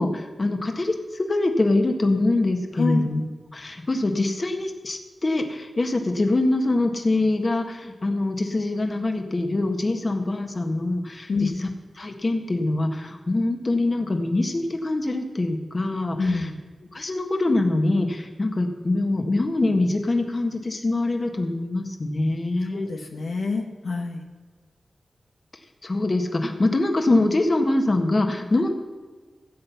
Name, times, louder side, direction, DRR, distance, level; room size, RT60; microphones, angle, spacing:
voice 1, 0.0-3.2 3.5-11.7 12.0-16.5 16.9-22.9 25.8-28.7, left 2 dB, 40° left, 5 dB, 1.6 m, -24 dB
voice 2, 16.2-16.6 22.7-24.2, left 4 dB, 85° left, 2 dB, 1.1 m, -26 dB
15.5 x 7.9 x 5.8 m, 1.4 s
cardioid pair, 65°, 0 cm